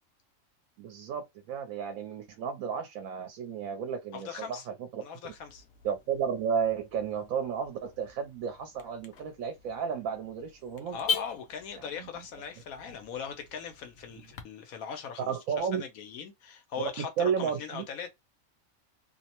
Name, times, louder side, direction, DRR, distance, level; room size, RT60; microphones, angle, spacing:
voice 1, 0.8-5.3 5.8-11.0 11.8-12.1 15.3-15.8 17.2-17.8, right 7 dB, 80° right, 1.0 m, -33 dB
voice 2, 4.1-4.7 5.0-5.6 10.9-18.1, left 7 dB, 85° left, 1.2 m, -40 dB
Car / Alarm, 5.3-14.4, left 5 dB, 65° left, 0.8 m, -41 dB
2.8 x 2.0 x 2.8 m
omnidirectional pair, 1.4 m